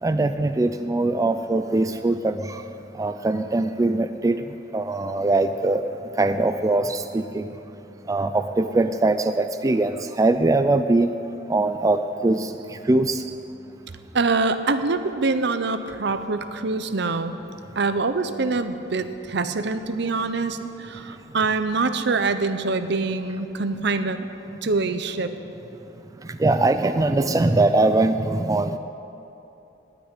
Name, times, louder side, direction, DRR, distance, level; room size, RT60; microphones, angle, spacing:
voice 1, 0.0-2.6 3.0-4.4 4.7-5.9 6.2-7.5 8.1-11.1 11.5-13.2 26.2-28.8, right 2 dB, 20° right, 9 dB, 0.3 m, -22 dB
voice 2, 14.1-17.4 17.8-24.2 24.6-25.3, right 3 dB, 65° right, 10 dB, 0.8 m, -24 dB
18.5 x 6.2 x 9.8 m, 3.0 s
head